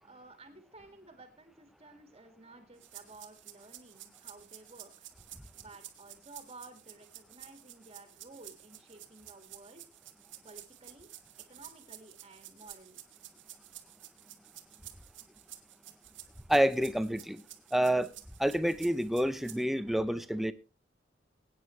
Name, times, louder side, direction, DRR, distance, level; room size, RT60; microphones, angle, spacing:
voice 1, 0.0-5.1 5.5-9.9 10.4-11.1 11.5-13.0, right 2 dB, 30° right, 1.9 m, -54 dB
sound 1, 2.8-19.6, right 13 dB, 90° right, 1.7 m, -52 dB
voice 2, 16.5-17.4 17.7-18.1 18.4-20.5, right 1 dB, ahead, 0.6 m, -28 dB
22.5 x 9.1 x 3.1 m
head